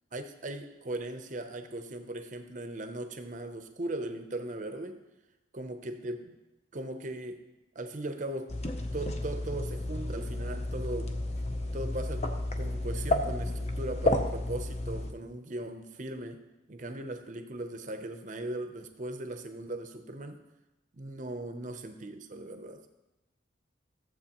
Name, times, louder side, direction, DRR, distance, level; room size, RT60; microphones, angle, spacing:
voice 1, 0.1-5.0 5.5-6.2 6.7-7.4 7.7-8.6 8.9-11.2 11.7-12.3 12.6-16.4 16.7-20.4 20.9-22.8, right 1 dB, 40° right, 7 dB, 0.7 m, -38 dB
sound 1, 8.5-15.1, left 1 dB, 35° left, 0.7 m, -32 dB
14.5 x 7.5 x 2.9 m, 1.0 s
head